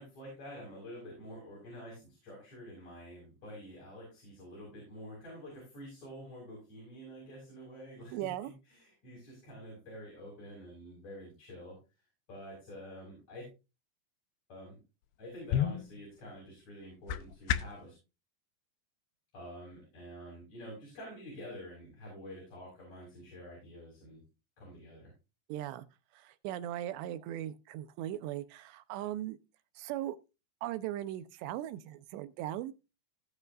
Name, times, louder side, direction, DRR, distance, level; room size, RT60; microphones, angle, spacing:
voice 1, 0.0-11.8 12.3-13.4 14.5-14.8 15.2-17.9 19.3-24.2 24.6-25.1, equal, 40° left, 6.7 m, -48 dB
voice 2, 8.1-8.5 25.5-25.8 26.1-29.4 29.8-30.2 30.6-32.7, right 13 dB, 85° right, 2.9 m, -38 dB
sound 1, 15.0-17.9, left 10 dB, 80° left, 2.3 m, -35 dB
18.5 x 6.5 x 2.5 m
omnidirectional pair, 5.0 m